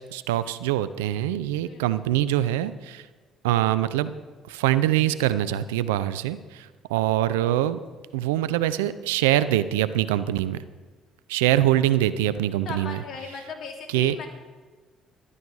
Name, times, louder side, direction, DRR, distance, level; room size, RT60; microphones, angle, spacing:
voice 1, 0.1-3.1 3.4-4.1 4.5-7.8 8.1-10.6 11.3-13.0 13.9-14.2, right 13 dB, 85° right, 15 dB, 0.5 m, -24 dB
voice 2, 12.6-14.3, left 5 dB, 60° left, 2 dB, 2.5 m, -37 dB
12.5 x 12.0 x 4.8 m, 1.3 s
hypercardioid pair, 55°, 0 cm